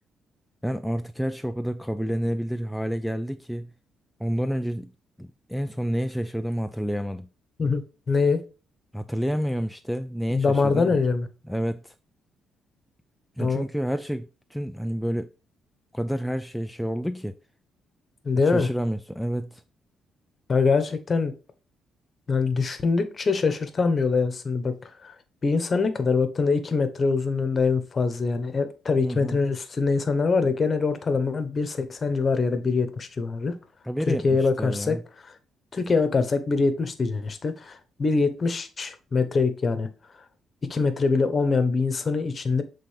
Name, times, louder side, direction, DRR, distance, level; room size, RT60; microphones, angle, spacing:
voice 1, 0.6-3.7 4.2-4.9 5.2-7.3 8.9-11.0 11.5-11.9 13.4-15.3 15.9-17.4 18.4-19.6 29.0-29.4 33.9-35.0, equal, ahead, 0.4 m, -29 dB
voice 2, 8.1-8.4 10.3-11.3 13.4-13.6 18.2-18.7 20.5-21.3 22.3-24.8 25.0-25.1 25.4-33.5 34.1-35.0 35.2-35.3 35.7-39.9 40.6-42.6, left 4 dB, 40° left, 1.1 m, -24 dB
7.5 x 3.8 x 3.4 m
cardioid pair, 90°, 0 cm